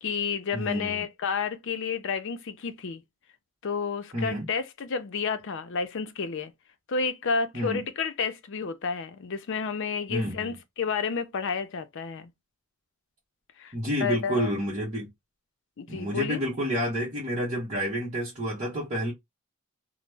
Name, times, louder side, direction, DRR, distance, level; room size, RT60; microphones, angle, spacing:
voice 1, 0.0-3.0 3.6-6.5 6.9-12.3 13.6-13.7 14.0-14.5 15.8-16.4, left 5 dB, 60° left, 0.5 m, -30 dB
voice 2, 0.5-1.0 4.1-4.5 7.5-7.8 10.1-10.5 13.7-15.1 15.9-19.1, equal, 30° right, 0.9 m, -29 dB
2.9 x 2.0 x 3.3 m
head